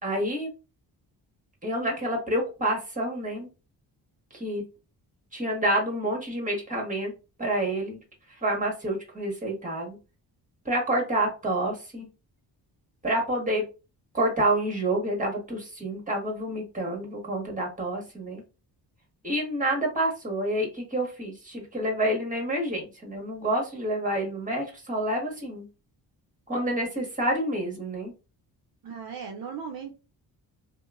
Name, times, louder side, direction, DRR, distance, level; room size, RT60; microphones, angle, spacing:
voice 1, 0.0-0.5 1.6-3.5 4.3-4.6 5.3-7.1 7.4-8.0 8.4-10.0 10.6-12.1 13.0-13.7 14.1-18.4 19.2-25.7 26.5-28.1, right 1 dB, 20° right, 1 dB, 1.4 m, -28 dB
voice 2, 28.8-29.9, right 6 dB, 55° right, 3 dB, 0.6 m, -37 dB
2.8 x 2.2 x 2.4 m, 0.31 s
cardioid pair, 60°, 42 cm